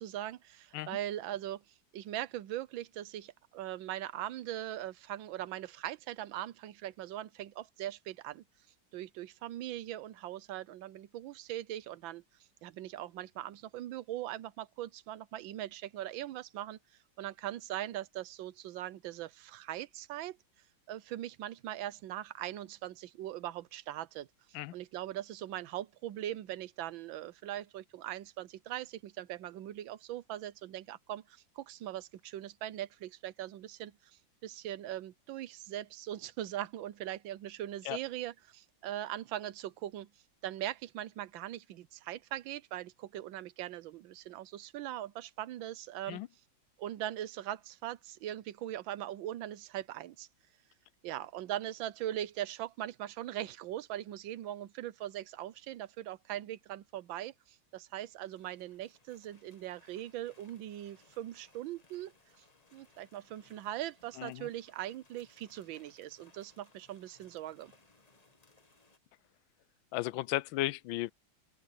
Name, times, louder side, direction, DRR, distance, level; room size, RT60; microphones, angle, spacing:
voice 1, 0.0-1.6 1.9-8.4 8.9-12.2 12.6-16.8 17.2-20.4 20.9-24.3 24.7-34.0 34.4-40.1 40.4-46.2 46.8-50.3 51.0-62.1 62.7-67.7, right 13 dB, 90° right, 1.5 m, -40 dB
sound 1, 58.2-69.0, left 3 dB, 20° left, 1.4 m, -66 dB
voice 2, 64.2-64.5 69.9-71.1, left 16 dB, 90° left, 1.3 m, -35 dB
open air
omnidirectional pair, 2.1 m